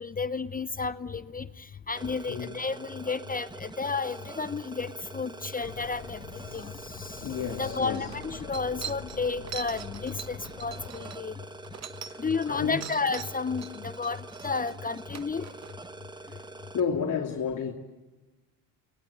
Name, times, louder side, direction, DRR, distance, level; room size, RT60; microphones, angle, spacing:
voice 1, 0.0-1.5 1.9-6.2 6.5-6.7 7.0-7.2 7.6-11.3 12.2-15.5, left 4 dB, 20° left, 0.8 m, -32 dB
sound 1, 1.9-16.8, right 2 dB, 10° right, 1.1 m, -45 dB
sound 2, 5.6-10.9, left 10 dB, 65° left, 2.3 m, -44 dB
voice 2, 7.2-8.0 12.0-12.2 12.5-12.9 16.7-17.7, left 6 dB, 45° left, 3.0 m, -31 dB
sound 3, 7.4-7.5 7.8-12.5 12.8-15.7, right 8 dB, 40° right, 1.0 m, -42 dB
27.5 x 20.5 x 8.5 m
supercardioid pair, 80°, 42 cm